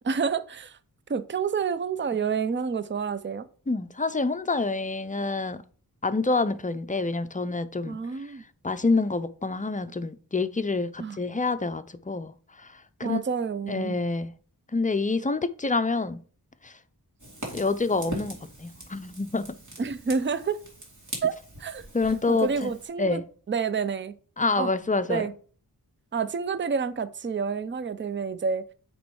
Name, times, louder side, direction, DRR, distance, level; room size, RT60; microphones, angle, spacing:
voice 1, 0.0-0.8 1.1-3.5 7.9-8.4 11.0-11.2 13.0-14.0 19.8-20.6 21.2-21.3 21.6-21.8 22.3-23.2 23.5-24.1 24.6-24.7 25.1-25.3 26.1-28.7, right 5 dB, 30° right, 0.5 m, -28 dB
voice 2, 3.7-5.6 6.0-8.0 8.6-12.3 12.6-13.2 13.7-14.3 14.7-16.2 16.6-16.7 17.5-19.6 21.9-22.7 23.0-23.2 24.4-25.3, left 3 dB, 20° left, 0.5 m, -27 dB
Fire, 17.2-22.9, right 1 dB, 50° right, 2.4 m, -42 dB
8.5 x 3.1 x 4.7 m
wide cardioid pair, 75°, 39 cm